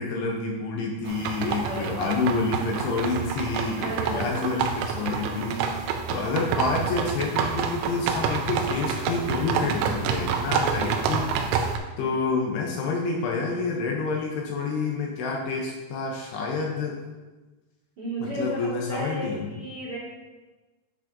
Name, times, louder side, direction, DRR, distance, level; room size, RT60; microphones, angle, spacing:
voice 1, 0.0-11.5 12.0-17.0 18.2-19.6, left 4 dB, 75° left, -1 dB, 2.7 m, -28 dB
sound 1, 1.1-11.8, right 6 dB, 85° right, 2.9 m, -28 dB
voice 2, 1.6-2.1 3.8-4.3 9.3-9.6 10.5-10.8 18.0-20.0, right 1 dB, 40° right, -10 dB, 2.0 m, -34 dB
10.5 x 6.2 x 2.6 m, 1.2 s
omnidirectional pair, 5.3 m